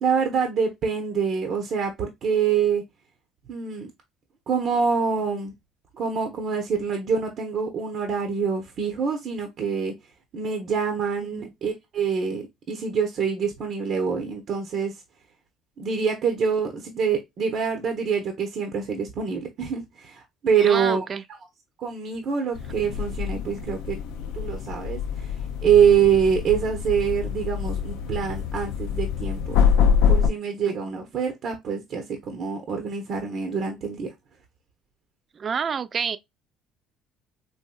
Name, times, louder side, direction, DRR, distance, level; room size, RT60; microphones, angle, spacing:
voice 1, 0.0-2.8 3.5-3.9 4.5-5.5 6.0-9.9 10.3-15.0 15.8-21.0 21.8-24.0 24.3-25.3 25.6-29.7 30.1-34.1, right 6 dB, 60° right, 0.8 m, -25 dB
voice 2, 20.6-21.2 30.6-31.0 35.3-36.2, right 6 dB, 40° right, 0.4 m, -29 dB
sound 1, 22.5-30.3, left 7 dB, 80° left, 0.5 m, -25 dB
4.1 x 2.6 x 2.2 m
supercardioid pair, 80°, 0 cm